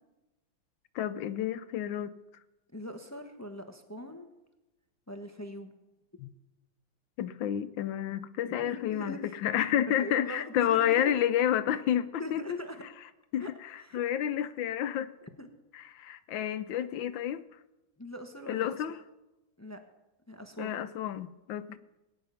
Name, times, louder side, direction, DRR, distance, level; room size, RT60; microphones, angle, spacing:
voice 1, 0.9-2.1 6.2-6.3 7.2-12.4 13.3-15.1 15.7-17.4 18.5-19.0 20.6-21.8, left 10 dB, 75° left, 13 dB, 1.4 m, -30 dB
voice 2, 2.7-4.3 5.1-5.7 8.4-9.4 10.0-11.2 12.2-12.8 13.4-13.5 13.8-14.0 15.4-15.5 18.0-19.0 19.6-19.8 20.3-20.8, equal, 20° left, 6 dB, 0.5 m, -42 dB
20.5 x 9.7 x 5.6 m, 1.0 s
omnidirectional pair, 2.2 m